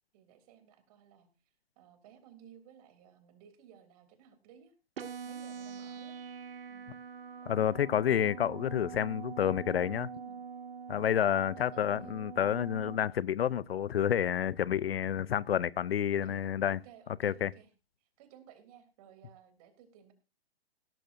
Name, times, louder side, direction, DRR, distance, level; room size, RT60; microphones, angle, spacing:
voice 1, 0.1-1.3 1.8-4.7 5.2-6.2 6.7-6.9 10.1-10.4 11.6-12.1 16.2-17.7 18.0-20.1, right 9 dB, 35° right, 3.1 m, -57 dB
sound 1, 5.0-13.0, right 6 dB, 60° right, 1.9 m, -44 dB
voice 2, 7.5-10.1 10.9-16.8 17.2-17.5, left 9 dB, 65° left, 0.6 m, -29 dB
16.5 x 13.5 x 2.6 m
hypercardioid pair, 145°, 32 cm